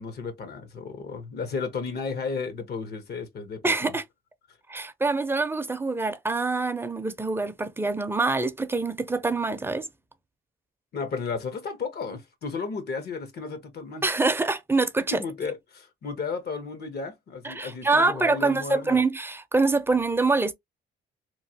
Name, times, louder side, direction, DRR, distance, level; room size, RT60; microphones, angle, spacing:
voice 1, 0.0-4.0 10.9-14.1 15.1-19.0, left 4 dB, 55° left, 0.9 m, -33 dB
voice 2, 3.6-4.0 4.7-9.9 14.0-15.2 17.4-20.5, right 3 dB, 10° right, 0.5 m, -25 dB
3.0 x 2.2 x 2.7 m
cardioid pair, 90°, 20 cm